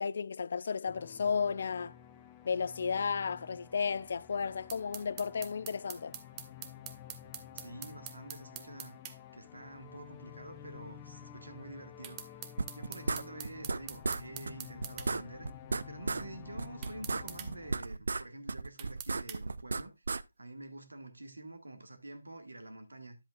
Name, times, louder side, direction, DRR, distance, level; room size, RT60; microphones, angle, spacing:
voice 1, 0.0-1.9 2.4-6.2, left 6 dB, 50° left, 0.4 m, -33 dB
sound 1, 0.8-17.8, left 9 dB, 20° left, 0.8 m, -51 dB
sound 2, 4.7-9.2 12.0-15.1 16.8-17.5 18.8-19.4, right 10 dB, 20° right, 0.7 m, -45 dB
voice 2, 7.5-9.0 9.3-12.4 12.8-15.5 15.9-20.0 20.4-23.2, right 2 dB, 85° right, 1.6 m, -48 dB
sound 3, 12.6-13.8 14.0-14.2 14.5-14.6 14.8-16.2 16.6-18.2 18.5-20.2, right 3 dB, 70° right, 0.4 m, -34 dB
10.5 x 7.8 x 2.4 m
figure-of-eight pair, 155°, 0 cm